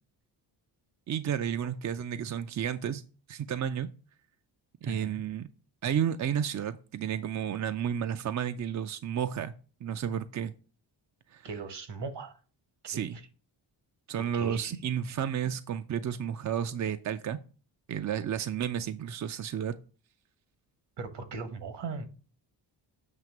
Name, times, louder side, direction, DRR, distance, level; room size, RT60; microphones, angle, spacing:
voice 1, 1.1-3.0 3.3-3.9 4.8-5.5 5.8-9.5 9.8-10.5 11.3-11.5 12.9-13.2 14.1-17.4 17.9-19.8, right 9 dB, 40° right, 0.4 m, -32 dB
voice 2, 4.8-5.2 11.4-12.3 12.8-13.2 14.3-14.7 21.0-22.1, right 4 dB, 60° right, 1.3 m, -38 dB
7.6 x 2.8 x 5.9 m
cardioid pair, 70°, 46 cm